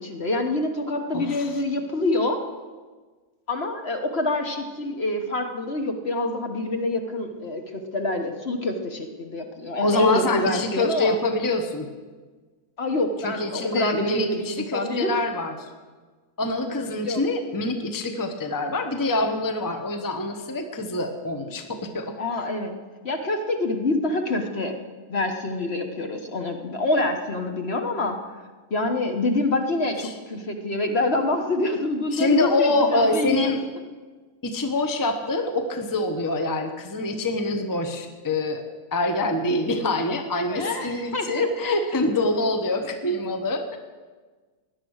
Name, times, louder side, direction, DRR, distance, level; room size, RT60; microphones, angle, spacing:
voice 1, 0.0-2.4 3.5-11.2 12.8-15.2 17.0-17.2 22.2-22.8 23.0-24.8 25.1-28.2 28.7-33.5 40.5-41.5, left 2 dB, 45° left, 4 dB, 1.3 m, -26 dB
voice 2, 1.1-1.5 9.8-11.9 13.2-15.5 16.4-22.1 30.0-30.1 32.1-33.6 34.4-38.6 38.9-43.8, left 2 dB, 15° left, 6 dB, 0.9 m, -25 dB
17.0 x 11.0 x 6.4 m, 1.4 s
omnidirectional pair, 1.7 m